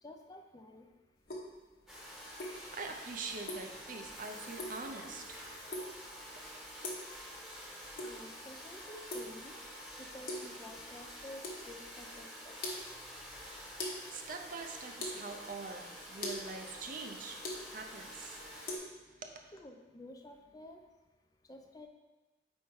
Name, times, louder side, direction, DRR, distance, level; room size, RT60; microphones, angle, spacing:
voice 1, 0.0-0.9 8.0-9.6 10.0-12.6 19.5-20.8 21.5-21.9, left 1 dB, 20° left, 3 dB, 0.4 m, -51 dB
sound 1, 1.2-18.8, left 1 dB, 55° left, 1.0 m, -45 dB
Domestic sounds home sounds, 1.9-18.8, equal, ahead, 1.0 m, -48 dB
voice 2, 2.6-6.6 13.9-19.5, right 4 dB, 50° right, 4 dB, 0.5 m, -45 dB
4.6 x 4.4 x 4.6 m, 1.2 s
head